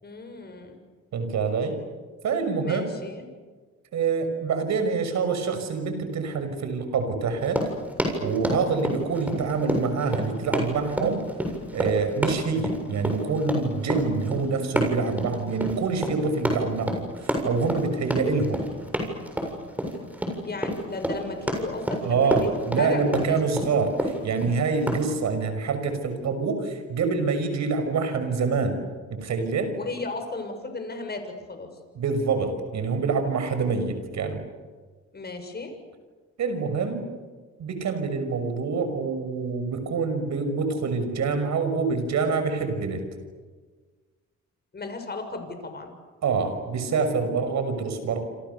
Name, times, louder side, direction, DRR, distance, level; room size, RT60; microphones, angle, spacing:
voice 1, 0.0-0.8 2.6-3.2 20.4-22.5 22.8-23.7 29.7-31.7 35.1-35.7 44.7-45.9, left 3 dB, 35° left, 6 dB, 6.7 m, -35 dB
voice 2, 1.1-1.8 2.2-2.8 3.9-7.6 8.2-11.2 11.7-18.6 22.0-28.8 29.1-29.7 31.9-34.4 36.4-37.1 37.6-43.0 46.2-48.2, right 4 dB, 65° right, 8 dB, 6.3 m, -26 dB
Run, 7.4-25.1, equal, 5° right, 7.5 m, -29 dB
28.0 x 27.5 x 7.1 m, 1.4 s
cardioid pair, 90°, 30 cm